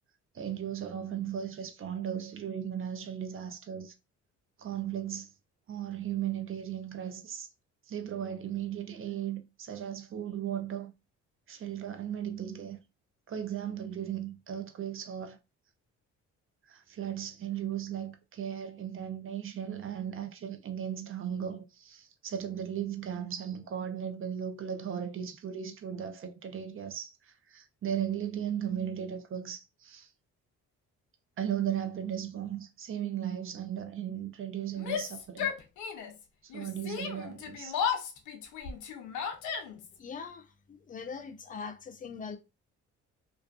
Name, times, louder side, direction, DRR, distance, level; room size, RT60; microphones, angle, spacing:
voice 1, 0.3-3.9 4.6-5.3 5.7-7.5 7.9-10.9 11.5-12.8 13.3-15.4 16.7-30.1 31.4-35.5 36.4-37.8, right 9 dB, 45° right, 0.5 m, -36 dB
Yell, 34.8-36.2 36.5-40.0, left 7 dB, 85° left, 0.6 m, -35 dB
voice 2, 40.0-40.5 40.9-42.4, left 5 dB, 25° left, 0.5 m, -41 dB
2.5 x 2.4 x 2.3 m
cardioid pair, 90°, 30 cm